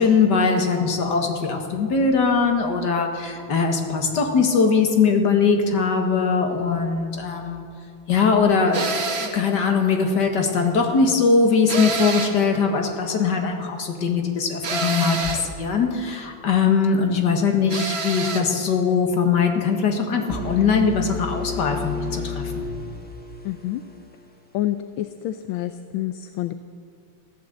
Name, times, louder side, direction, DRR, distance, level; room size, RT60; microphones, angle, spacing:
voice 1, 0.0-7.6 8.1-8.9 9.2-22.7, left 5 dB, 55° left, 4 dB, 2.2 m, -21 dB
sound 1, 8.7-9.4 11.7-12.5 14.6-15.5 17.7-18.5, right 3 dB, 40° right, 1.1 m, -27 dB
sound 2, 20.3-24.2, left 4 dB, 5° left, 1.3 m, -32 dB
voice 2, 23.4-23.8 24.5-26.5, left 14 dB, 80° left, 11 dB, 1.4 m, -28 dB
15.0 x 11.5 x 7.9 m, 2.4 s
omnidirectional pair, 2.2 m